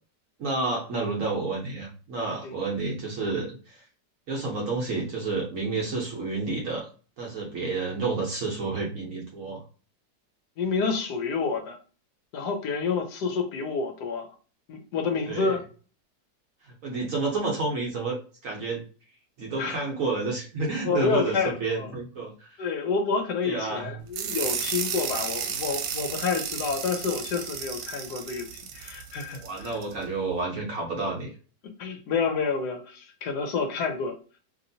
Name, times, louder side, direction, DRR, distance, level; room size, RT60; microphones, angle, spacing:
voice 1, 0.4-3.8 4.3-6.9 7.2-9.6 15.3-15.6 16.6-18.2 18.4-18.8 19.4-22.6 23.4-23.9 29.3-31.3, right 3 dB, 60° right, -2 dB, 1.0 m, -30 dB
voice 2, 10.6-11.8 12.3-14.3 14.7-15.6 19.6-19.8 20.8-21.9 22.6-28.5 28.7-29.7 31.8-34.2, left 5 dB, 70° left, 5 dB, 1.1 m, -29 dB
sound 1, 24.1-29.9, right 7 dB, 85° right, 1.3 m, -33 dB
3.0 x 2.8 x 2.6 m, 0.37 s
omnidirectional pair, 1.9 m